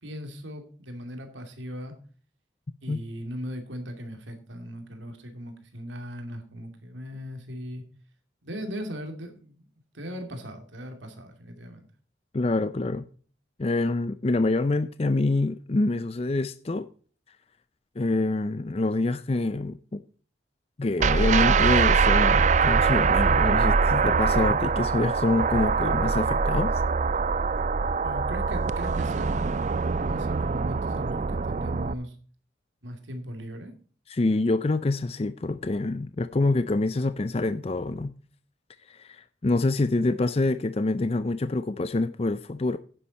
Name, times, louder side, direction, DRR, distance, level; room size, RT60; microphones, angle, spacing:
voice 1, 0.0-1.9 2.8-7.8 8.4-9.7 9.9-11.9 28.0-29.5 30.0-32.2 32.8-33.7, equal, 90° right, 2.6 m, -38 dB
voice 2, 12.3-13.1 13.6-16.9 18.0-20.0 20.8-26.8 34.1-38.1 38.9-42.8, left 2 dB, 30° left, 0.5 m, -26 dB
sound 1, 21.0-31.9, right 5 dB, 40° right, 0.4 m, -23 dB
10.5 x 10.0 x 4.1 m
head